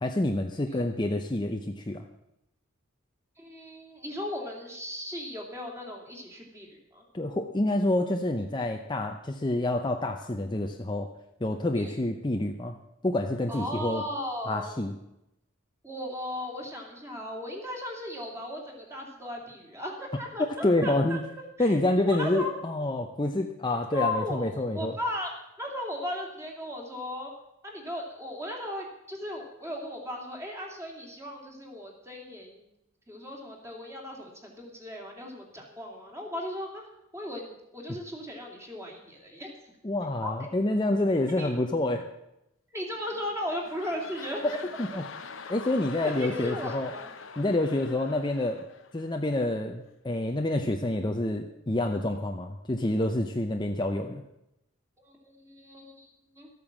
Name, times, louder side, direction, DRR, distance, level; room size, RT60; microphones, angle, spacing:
voice 1, 0.0-2.0 7.1-11.1 11.4-12.8 13.0-14.0 14.5-14.9 20.4-21.2 21.6-25.0 39.8-42.0 44.4-44.5 44.8-45.0 45.5-46.9 47.4-48.6 48.9-54.2, left 1 dB, 20° left, 4 dB, 0.7 m, -28 dB
voice 2, 3.4-7.0 11.8-11.9 13.5-14.7 15.8-21.2 21.6-21.8 22.0-22.5 23.9-25.3 25.6-27.3 27.6-32.6 33.1-36.8 37.1-39.5 40.2-40.3 41.3-41.5 42.7-44.6 46.0-47.1 47.8-48.0 55.0-56.5, left 1 dB, 15° right, 0 dB, 2.7 m, -36 dB
sound 1, 43.0-49.6 50.1-50.2, left 5 dB, 65° left, 1.0 m, -44 dB
13.5 x 8.8 x 7.3 m, 0.86 s
head